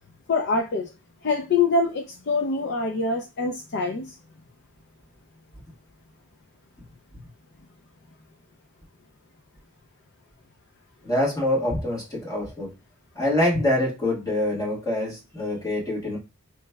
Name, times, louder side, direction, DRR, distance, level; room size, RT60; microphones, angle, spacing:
voice 1, 0.3-0.9 1.2-4.1, left 3 dB, 50° left, 0.4 m, -24 dB
voice 2, 11.0-12.7 13.1-16.2, left 1 dB, 15° left, 1.3 m, -25 dB
4.5 x 3.0 x 2.2 m
head